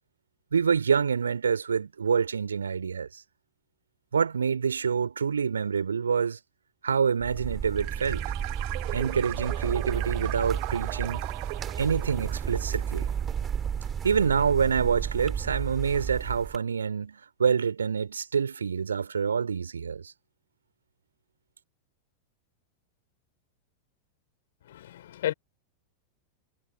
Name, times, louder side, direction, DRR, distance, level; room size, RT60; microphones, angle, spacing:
voice 1, 0.5-3.2 4.1-6.4 6.8-8.2 8.9-11.2 11.8-13.1 14.0-20.1, right 6 dB, 70° right, 2.6 m, -27 dB
sound 1, 7.2-16.6, right 8 dB, 20° right, 3.8 m, -33 dB
sound 2, 7.8-13.5, right 37 dB, 45° right, 1.0 m, -38 dB
voice 2, 24.6-25.3, left 12 dB, 60° left, 4.1 m, -32 dB
figure-of-eight pair, 90°, 0 cm